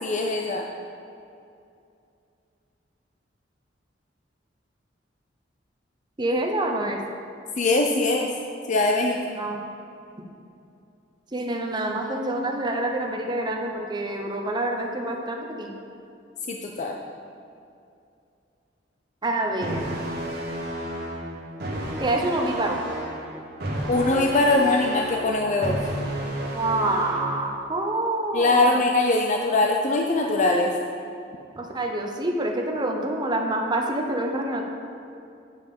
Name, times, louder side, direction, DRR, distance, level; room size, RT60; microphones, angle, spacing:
voice 1, 0.0-0.6 7.6-8.3 8.7-9.2 16.5-17.0 23.9-25.8 28.3-30.7, left 2 dB, 40° left, 1 dB, 0.5 m, -22 dB
voice 2, 6.2-7.0 9.4-9.6 11.3-15.8 19.2-19.8 22.0-22.8 26.5-28.8 31.6-34.6, right 1 dB, 25° right, 2 dB, 0.9 m, -27 dB
sound 1, 19.6-27.6, right 1 dB, 60° right, 1.4 m, -32 dB
8.7 x 5.3 x 5.4 m, 2.6 s
head